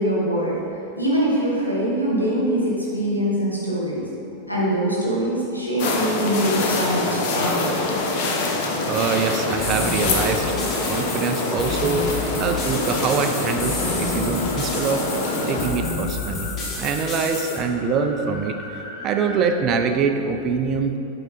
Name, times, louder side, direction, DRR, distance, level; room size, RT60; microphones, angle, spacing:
voice 1, 0.0-4.1 4.5-7.7, right 1 dB, 85° left, -6 dB, 1.5 m, -23 dB
sound 1, 5.1-19.5, left 1 dB, 65° left, 1.2 m, -41 dB
sound 2, 5.8-15.7, left 3 dB, 50° left, 0.8 m, -25 dB
voice 2, 8.9-10.6 10.9-12.1 12.4-15.1 15.5-21.0, right 5 dB, 35° right, 6 dB, 0.4 m, -24 dB
sound 3, 9.6-17.6, left 3 dB, 30° left, 1.3 m, -30 dB
8.2 x 3.8 x 4.0 m, 2.8 s
figure-of-eight pair, 90°, 0 cm